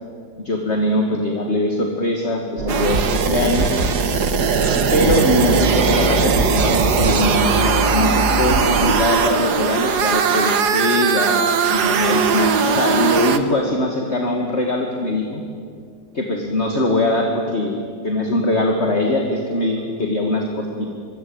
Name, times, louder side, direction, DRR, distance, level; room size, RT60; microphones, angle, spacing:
voice 1, 0.4-3.7 4.9-15.4 16.1-20.9, left 1 dB, 40° left, 2 dB, 2.4 m, -22 dB
sound 1, 2.6-9.1, right 1 dB, 40° right, 1.9 m, -24 dB
sound 2, 2.7-13.4, right 6 dB, 75° right, 1.9 m, -19 dB
26.0 x 23.5 x 8.8 m, 2.2 s
omnidirectional pair, 1.7 m